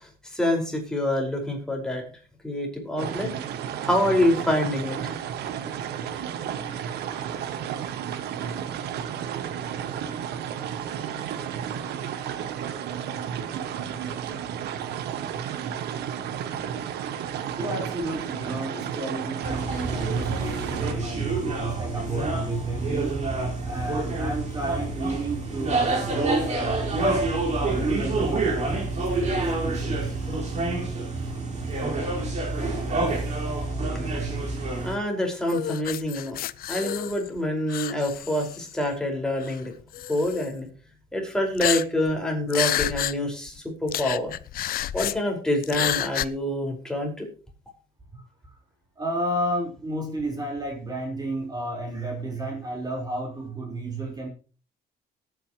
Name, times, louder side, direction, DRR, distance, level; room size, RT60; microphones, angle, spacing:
voice 1, 0.3-2.0 2.4-3.3 3.9-5.0 34.8-36.4 36.7-39.7 40.1-40.7 41.1-44.3 44.9-47.3, left 1 dB, 5° left, 1 dB, 5.1 m, -26 dB
sound 1, 3.0-20.9, right 9 dB, 75° right, 1.6 m, -32 dB
voice 2, 17.6-23.1 23.6-27.0 27.5-30.5 33.8-34.4 48.1-48.5 49.0-54.3, right 2 dB, 25° right, 1 dB, 4.3 m, -32 dB
sound 2, 19.4-35.0, right 3 dB, 45° right, 4.7 m, -27 dB
sound 3, 35.5-37.4 37.7-38.8 39.4-39.6 39.9-40.5 41.6-42.2 42.5-43.1 43.5-43.6 43.9-45.2 45.6-46.2, left 13 dB, 60° left, 0.6 m, -29 dB
18.0 x 9.8 x 3.1 m, 0.36 s
cardioid pair, 110°, 17 cm